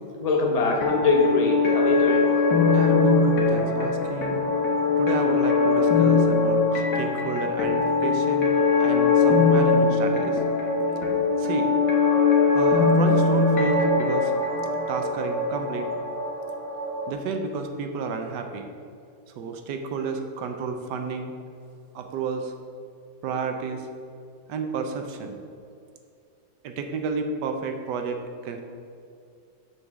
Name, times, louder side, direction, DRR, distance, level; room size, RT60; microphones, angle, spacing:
voice 1, 0.2-2.2, left 3 dB, 30° left, 0 dB, 0.7 m, -22 dB
sound 1, 0.6-17.1, left 4 dB, 60° left, 1.6 m, -22 dB
voice 2, 2.7-4.5 5.0-10.4 11.4-11.7 12.5-14.3 14.9-15.9 17.1-18.7 19.4-21.3 21.9-22.5 23.2-23.9 24.5-25.4 26.6-28.6, right 4 dB, 75° right, 5 dB, 1.2 m, -31 dB
7.0 x 6.9 x 3.6 m, 2.5 s
omnidirectional pair, 2.0 m